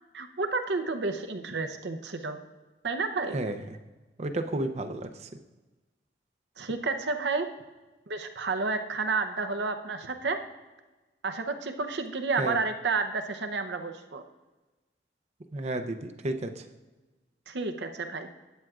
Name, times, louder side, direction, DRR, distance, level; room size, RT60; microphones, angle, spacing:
voice 1, 0.1-2.4 2.8-3.4 6.6-7.5 8.1-10.4 11.2-14.2 17.5-18.3, right 4 dB, 80° right, 7 dB, 0.7 m, -30 dB
voice 2, 4.2-5.1 12.4-12.6 15.5-16.6, right 2 dB, 40° right, 8 dB, 0.6 m, -31 dB
12.5 x 8.9 x 2.4 m, 1.2 s
head